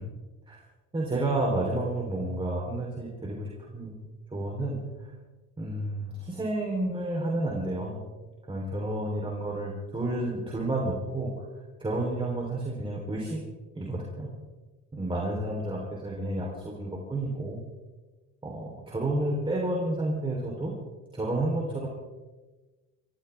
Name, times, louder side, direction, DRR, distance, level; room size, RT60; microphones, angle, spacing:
voice 1, 0.9-4.0 4.3-5.1 5.6-8.0 8.5-11.3 11.8-13.4 13.7-14.3 14.9-17.6 18.4-20.7 21.1-21.9, right 1 dB, 15° right, -3 dB, 3.9 m, -30 dB
26.0 x 14.5 x 3.6 m, 1.2 s
cardioid pair, 125°, 33 cm